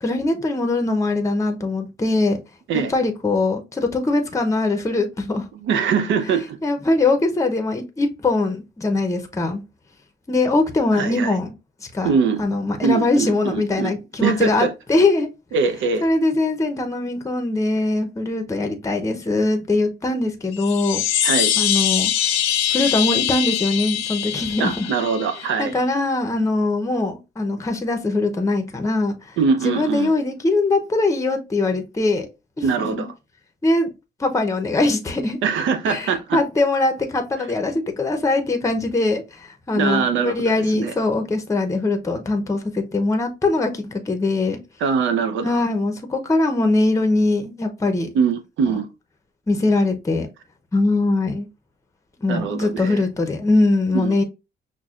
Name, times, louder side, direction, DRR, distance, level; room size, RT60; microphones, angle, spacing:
voice 1, 0.0-2.4 2.9-5.5 6.6-9.6 10.3-11.5 11.9-12.1 12.4-15.3 16.0-21.0 21.6-22.1 22.7-24.9 25.6-29.1 29.6-32.3 32.8-33.1 33.6-33.9 34.2-35.4 35.9-44.6 45.4-48.1 48.7-48.8 49.5-50.3 50.7-51.5 52.2-54.2, left 2 dB, 15° left, 0.7 m, -21 dB
voice 2, 5.6-6.6 10.9-11.3 12.0-12.4 12.8-13.9 14.2-14.7 15.5-16.1 21.2-21.5 24.6-25.7 29.4-30.1 32.6-33.1 35.4-36.4 39.7-40.3 40.7-40.9 44.8-45.5 48.1-48.9 52.3-53.0 53.9-54.2, right 5 dB, 75° right, 0.7 m, -22 dB
sound 1, 20.5-25.6, left 11 dB, 85° left, 0.6 m, -23 dB
5.8 x 2.2 x 2.4 m
cardioid pair, 90°, 20 cm